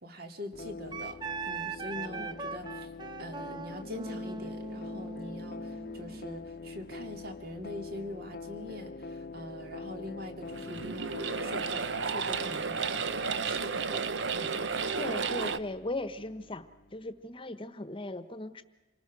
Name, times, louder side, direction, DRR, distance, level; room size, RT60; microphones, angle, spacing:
voice 1, 0.0-1.2 1.5-2.9 3.2-14.1 14.3-14.6, left 1 dB, 55° right, 6 dB, 2.3 m, -43 dB
sound 1, 0.5-17.3, left 3 dB, 55° left, 0.8 m, -45 dB
Wind instrument woodwind instrument, 0.9-6.3, right 4 dB, 25° right, 0.8 m, -40 dB
sound 2, 10.5-15.6, right 5 dB, 75° right, 0.8 m, -32 dB
voice 2, 15.0-16.6 16.9-18.6, left 2 dB, 30° left, 12 dB, 1.1 m, -38 dB
27.5 x 19.0 x 6.2 m, 1.1 s
head